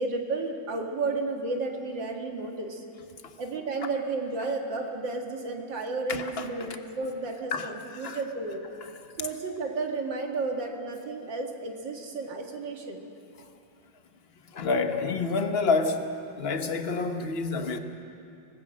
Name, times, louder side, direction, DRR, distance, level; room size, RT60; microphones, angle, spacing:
voice 1, 0.0-2.8 3.4-8.6 9.2-13.1, right 3 dB, 75° right, 2.6 m, -32 dB
voice 2, 6.1-6.5 7.5-8.2 14.5-17.8, left 4 dB, 35° left, 1.2 m, -28 dB
25.0 x 19.5 x 6.4 m
omnidirectional pair, 2.0 m